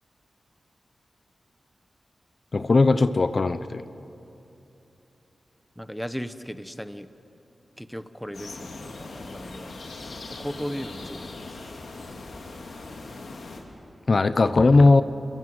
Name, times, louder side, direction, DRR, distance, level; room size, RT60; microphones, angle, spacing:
voice 1, 2.5-3.8 14.1-15.0, left 3 dB, 45° left, 11 dB, 0.7 m, -18 dB
voice 2, 5.8-7.1 7.8-9.7 10.3-11.6, equal, ahead, 10 dB, 1.0 m, -36 dB
sound 1, 8.3-13.6, left 3 dB, 80° left, 3.6 m, -40 dB
30.0 x 23.0 x 7.9 m, 2.9 s
wide cardioid pair, 110°, 0 cm